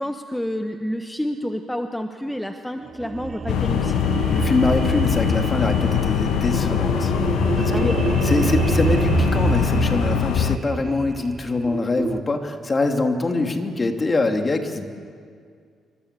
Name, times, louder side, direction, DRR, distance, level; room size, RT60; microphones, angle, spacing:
voice 1, 0.0-4.0 7.7-8.0, equal, 5° left, 6 dB, 1.3 m, -29 dB
sound 1, 2.8-12.2, right 5 dB, 40° right, 0.6 m, -26 dB
sound 2, 3.5-10.6, left 12 dB, 85° left, 0.7 m, -23 dB
voice 2, 4.3-7.1 7.6-7.9 8.2-14.9, left 3 dB, 30° left, 4 dB, 2.8 m, -24 dB
27.5 x 24.5 x 8.3 m, 2.1 s
cardioid pair, 90°, 0 cm